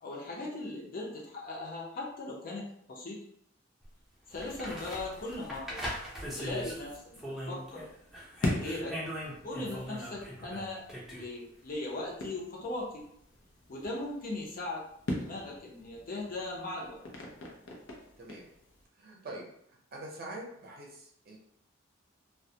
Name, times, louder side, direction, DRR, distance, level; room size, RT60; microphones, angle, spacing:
voice 1, 0.0-3.2 4.3-5.8 6.3-7.0 7.5-7.8 8.5-9.0 9.4-10.8 11.1-13.0 13.7-14.8 15.2-17.0, left 2 dB, 45° left, -3 dB, 0.6 m, -38 dB
sound 1, 3.8-3.9 4.3-7.9 8.1-11.3 13.8-13.9, equal, ahead, 0.5 m, -40 dB
sound 2, 6.2-18.9, left 1 dB, 85° left, 0.6 m, -42 dB
voice 2, 18.2-18.5 19.0-21.4, right 1 dB, 50° right, -1 dB, 0.6 m, -45 dB
2.2 x 2.1 x 2.7 m, 0.71 s
head